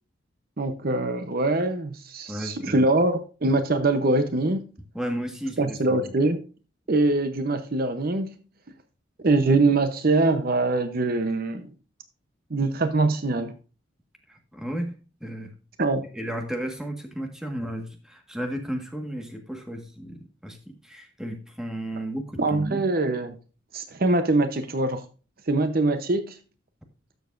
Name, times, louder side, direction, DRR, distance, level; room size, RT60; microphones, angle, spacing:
voice 1, 0.6-4.7 5.6-6.4 6.9-8.4 9.2-11.7 12.5-13.5 15.8-16.1 22.4-23.4 23.7-25.0 25.5-26.4, right 2 dB, 50° right, 9 dB, 0.8 m, -23 dB
voice 2, 2.3-2.8 4.9-6.1 14.3-15.5 16.1-22.8, equal, 5° right, 3 dB, 1.5 m, -34 dB
12.5 x 7.1 x 2.5 m, 0.35 s
head